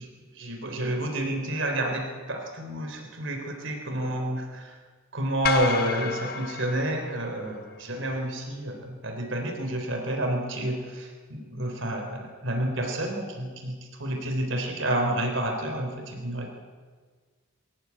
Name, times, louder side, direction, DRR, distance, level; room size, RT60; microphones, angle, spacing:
voice 1, 0.0-4.8 5.1-13.7 14.0-16.5, right 1 dB, 65° right, 2 dB, 3.5 m, -29 dB
sound 1, 5.4-7.8, left 5 dB, 45° left, 1.4 m, -31 dB
22.5 x 14.5 x 9.5 m, 1.5 s
head